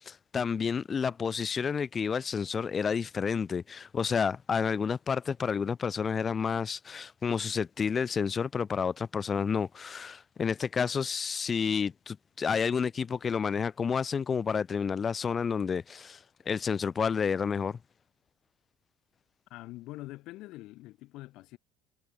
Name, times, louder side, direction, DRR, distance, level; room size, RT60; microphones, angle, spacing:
voice 1, 0.1-16.2 16.5-17.8, left 6 dB, 30° left, 1.8 m, -30 dB
voice 2, 19.5-21.6, left 18 dB, 70° left, 3.9 m, -44 dB
supercardioid pair, 110°, 0 cm